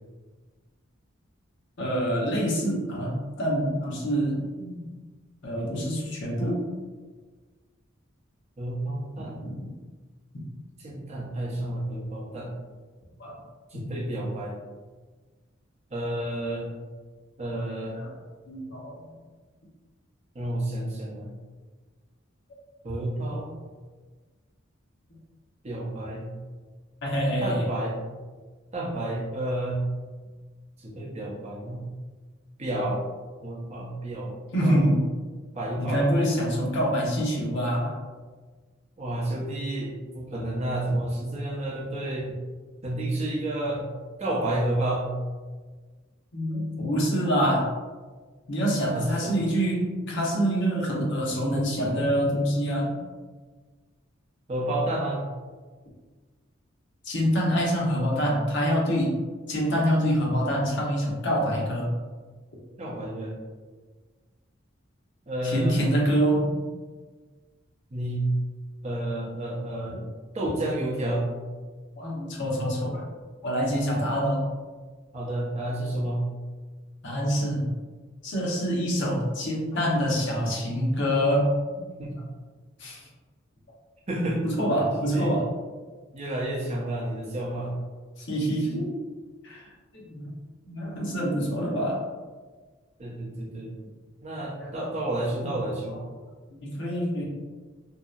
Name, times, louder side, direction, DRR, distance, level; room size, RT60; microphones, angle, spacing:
voice 1, 1.8-4.9 5.4-6.7 9.4-9.5 13.2-13.4 13.7-14.0 17.9-18.2 18.5-19.0 27.0-27.7 34.5-35.1 35.8-38.0 46.3-47.7 48.5-53.0 57.0-59.1 59.5-61.9 65.4-66.7 72.0-73.0 73.4-74.4 77.0-77.7 78.2-81.5 81.8-81.9 82.8-83.0 84.4-85.5 88.2-89.0 89.4-89.7 89.9-90.3 90.6-92.0 94.6-94.7 95.4-95.5 95.9-96.0 96.6-97.2, equal, 60° left, -4 dB, 0.7 m, -26 dB
voice 2, 8.6-9.5 10.8-12.5 13.7-14.5 15.9-16.7 17.4-18.0 20.3-21.3 22.8-23.5 25.6-26.3 27.4-28.0 28.7-29.8 30.8-31.8 32.6-33.0 33.4-34.9 35.5-36.1 39.0-42.3 42.8-43.9 44.2-45.1 48.9-49.4 54.5-55.3 62.8-63.3 65.3-65.9 67.9-68.3 68.8-70.0 70.3-71.3 75.1-76.2 82.0-82.2 84.1-84.4 84.9-85.3 86.1-87.7 93.0-93.7 94.2-96.0, right 1 dB, 30° right, -4 dB, 0.6 m, -30 dB
2.7 x 2.0 x 2.3 m, 1.4 s
head